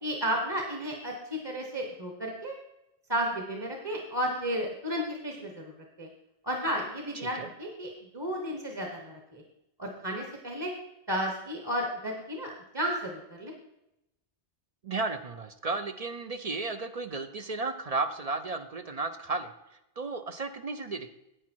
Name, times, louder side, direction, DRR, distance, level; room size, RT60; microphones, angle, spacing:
voice 1, 0.0-2.5 3.1-5.7 6.0-6.1 6.4-9.4 9.8-10.7 11.1-13.5, equal, 25° right, 2 dB, 1.2 m, -33 dB
voice 2, 7.1-7.5 14.8-19.5 20.0-21.2, right 3 dB, 45° right, 9 dB, 0.5 m, -34 dB
10.0 x 8.4 x 4.5 m, 0.89 s
omnidirectional pair, 1.1 m